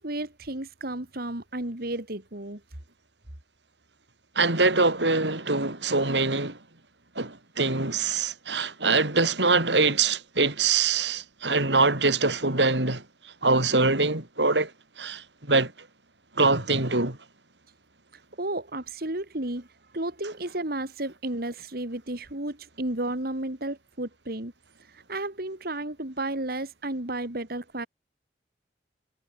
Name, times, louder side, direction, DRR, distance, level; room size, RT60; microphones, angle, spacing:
voice 1, 0.0-2.6 18.1-24.5 24.8-27.9, right 1 dB, 60° right, 3.1 m, -33 dB
voice 2, 4.4-6.6 7.2-14.7 15.0-15.7 16.4-17.2, right 3 dB, 90° right, 5.5 m, -24 dB
head